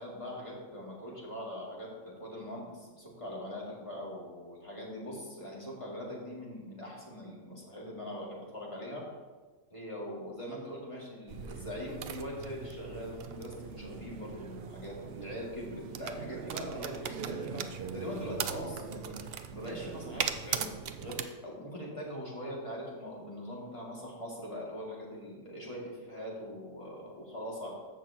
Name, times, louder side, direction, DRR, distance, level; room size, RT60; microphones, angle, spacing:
voice 1, 0.0-9.0 9.7-27.7, equal, 25° left, -5 dB, 2.3 m, -42 dB
sound 1, 11.3-21.2, right 7 dB, 60° right, 0.7 m, -39 dB
14.5 x 6.0 x 2.9 m, 1.3 s
omnidirectional pair, 1.3 m